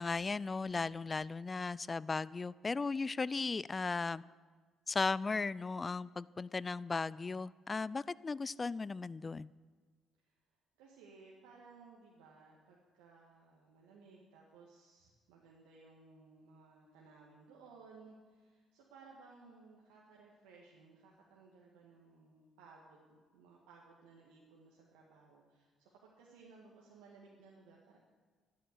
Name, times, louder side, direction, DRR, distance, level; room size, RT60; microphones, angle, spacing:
voice 1, 0.0-4.2 4.9-9.5, left 4 dB, 30° left, 21 dB, 0.4 m, -36 dB
voice 2, 10.8-28.0, right 4 dB, 75° right, -3 dB, 1.8 m, -60 dB
12.5 x 12.0 x 6.8 m, 1.4 s
hypercardioid pair, 45°, 0 cm